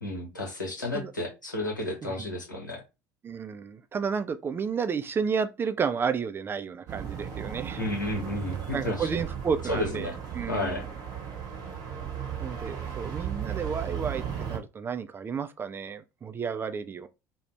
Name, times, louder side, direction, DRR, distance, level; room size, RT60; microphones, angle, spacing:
voice 1, 0.0-2.8 7.8-9.2 9.7-10.2 10.5-10.9, left 1 dB, 85° left, 0.8 m, -32 dB
voice 2, 3.2-7.8 8.7-10.8 12.4-17.1, right 6 dB, 25° right, 0.3 m, -32 dB
sound 1, 6.9-14.6, right 8 dB, 40° right, 0.8 m, -36 dB
2.5 x 2.1 x 3.1 m
figure-of-eight pair, 65°, 10 cm